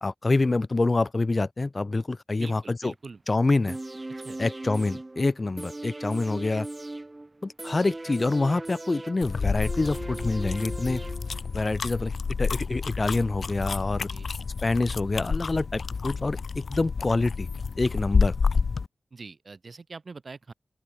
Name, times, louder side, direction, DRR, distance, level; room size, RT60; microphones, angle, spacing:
voice 1, 0.0-2.9 3.3-3.8 4.4-6.7 7.4-11.0 11.5-12.1 12.4-14.1 14.6-17.5 17.8-18.4, left 3 dB, 40° left, 0.5 m, -26 dB
voice 2, 2.4-3.2 4.2-4.4 14.1-14.3 19.1-20.5, right 4 dB, 60° right, 2.1 m, -43 dB
sound 1, 3.7-11.7 12.0-12.1, right 2 dB, 30° right, 2.1 m, -39 dB
sound 2, 9.2-18.9, left 5 dB, 80° left, 1.3 m, -29 dB
open air
wide cardioid pair, 75°, 0 cm